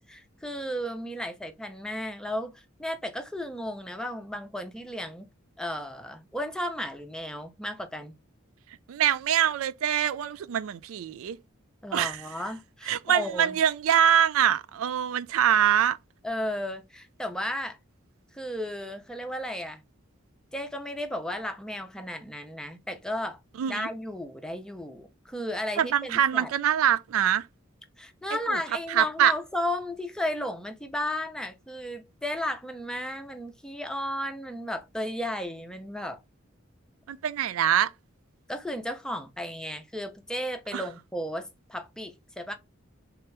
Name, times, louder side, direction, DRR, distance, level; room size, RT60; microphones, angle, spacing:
voice 1, 0.0-5.3 5.6-8.1 11.8-13.6 16.2-17.8 18.3-19.8 20.5-23.4 23.7-26.5 28.0-36.2 38.5-42.5, left 1 dB, 5° left, 0.6 m, -34 dB
voice 2, 8.9-11.4 11.9-12.2 12.9-16.0 23.6-23.9 25.8-27.5 28.5-28.6 28.9-29.3 37.1-37.9 40.7-40.8, right 9 dB, 85° right, 0.3 m, -24 dB
3.5 x 2.9 x 3.2 m
head